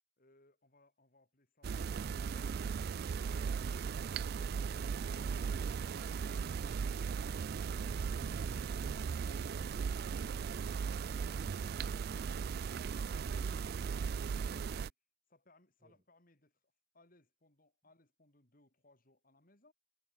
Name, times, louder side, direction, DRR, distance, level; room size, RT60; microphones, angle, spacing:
voice 1, 0.2-2.6 3.8-5.9 6.2-6.8 7.5-11.8 12.3-13.1 13.4-13.6 14.4-14.9 15.3-16.6 16.9-19.7, left 2 dB, 45° left, 3.3 m, -67 dB
sound 1, 1.6-14.9, right 6 dB, 50° right, 0.3 m, -37 dB
voice 2, 15.8-16.0, right 1 dB, 30° right, 2.8 m, -63 dB
head